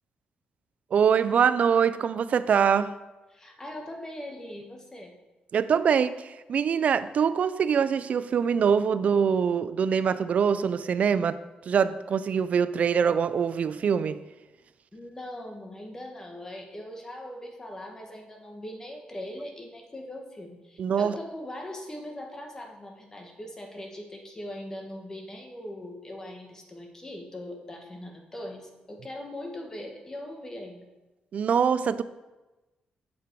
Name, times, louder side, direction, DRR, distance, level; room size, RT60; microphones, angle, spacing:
voice 1, 0.9-2.9 5.5-14.2 20.8-21.2 31.3-32.0, right 7 dB, 50° right, 0.4 m, -24 dB
voice 2, 3.3-5.2 14.9-30.9, left 1 dB, 20° left, 1.5 m, -40 dB
7.7 x 6.9 x 4.7 m
cardioid pair, 115°, 3 cm